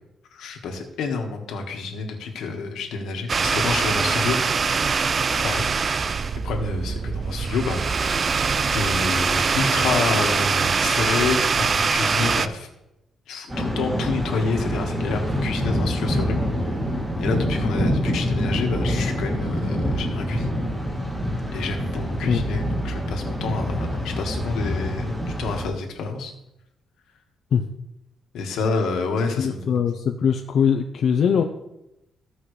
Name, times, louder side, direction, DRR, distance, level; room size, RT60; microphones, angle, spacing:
voice 1, 0.3-4.4 5.4-6.2 6.4-8.3 8.7-12.7 13.3-16.5 17.2-20.6 21.5-26.3 28.3-29.8, left 4 dB, 85° left, 3 dB, 1.6 m, -28 dB
sound 1, 3.3-12.5, right 5 dB, 40° right, 0.4 m, -23 dB
Thunder, 13.5-25.7, equal, 15° right, 2.7 m, -26 dB
voice 2, 29.4-31.4, left 7 dB, 65° left, 4 dB, 0.7 m, -21 dB
16.0 x 5.6 x 3.3 m, 0.89 s
cardioid pair, 100°, 0 cm